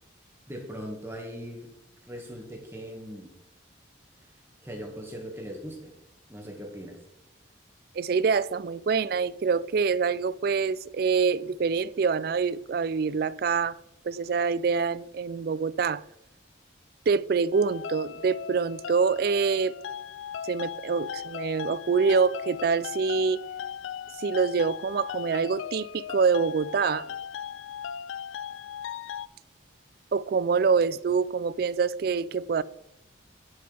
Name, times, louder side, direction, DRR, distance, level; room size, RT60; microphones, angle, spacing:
voice 1, 0.5-1.7 2.0-3.3 4.6-5.9 6.3-7.0, equal, 10° right, 1.8 m, -39 dB
voice 2, 8.0-13.8 14.0-16.0 17.1-19.7 20.5-23.4 24.2-27.1 30.1-32.6, right 5 dB, 50° right, 0.3 m, -25 dB
sound 1, 17.5-29.3, left 8 dB, 85° left, 0.3 m, -38 dB
11.0 x 6.3 x 3.4 m
head